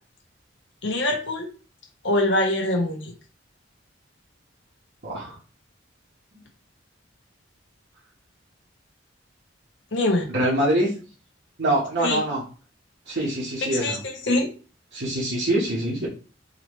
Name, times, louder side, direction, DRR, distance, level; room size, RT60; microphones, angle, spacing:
voice 1, 0.8-1.5 2.0-3.1 9.9-10.3 12.0-12.2 13.6-14.5, left 1 dB, 65° left, 2 dB, 1.0 m, -24 dB
voice 2, 5.0-5.4 10.3-10.9 11.6-12.4 13.1-14.0 14.9-16.1, right 1 dB, 60° right, -7 dB, 1.2 m, -24 dB
3.9 x 3.0 x 3.1 m, 0.36 s
head